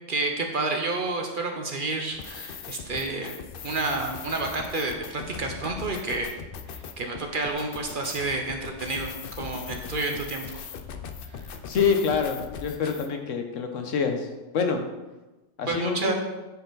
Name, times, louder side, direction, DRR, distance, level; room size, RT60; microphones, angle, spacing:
voice 1, 0.1-3.4 3.6-6.4 7.0-10.7 11.3-11.4 15.7-16.1, right 3 dB, 50° right, 3 dB, 0.8 m, -30 dB
sound 1, 2.1-13.1, left 6 dB, 60° left, 0.6 m, -40 dB
voice 2, 11.7-14.3 14.5-14.8 15.6-16.1, left 5 dB, 75° left, 5 dB, 1.2 m, -26 dB
9.5 x 4.5 x 3.9 m, 1.1 s
omnidirectional pair, 1.3 m